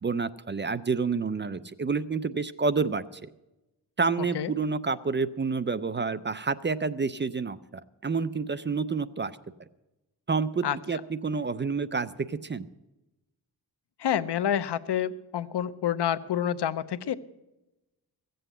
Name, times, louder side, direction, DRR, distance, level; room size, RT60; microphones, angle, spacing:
voice 1, 0.0-3.2 4.0-7.6 8.0-9.3 10.3-12.7, right 4 dB, 30° right, 14 dB, 0.4 m, -29 dB
voice 2, 14.0-17.1, left 9 dB, 80° left, 13 dB, 0.7 m, -28 dB
15.5 x 7.8 x 7.9 m, 0.99 s
wide cardioid pair, 150°, 41 cm